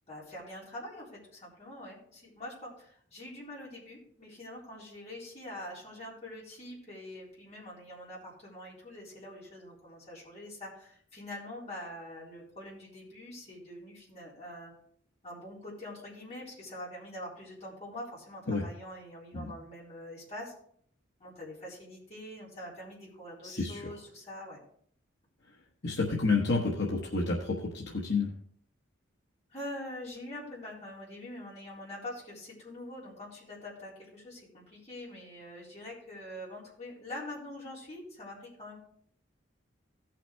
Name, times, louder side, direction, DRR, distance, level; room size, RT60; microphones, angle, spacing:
voice 1, 0.1-14.7 15.2-20.5 21.2-24.6 29.5-38.8, left 1 dB, 35° left, -6 dB, 4.0 m, -44 dB
voice 2, 23.4-23.9 25.8-28.3, left 3 dB, 60° left, -3 dB, 1.2 m, -30 dB
16.5 x 5.9 x 3.4 m, 0.63 s
head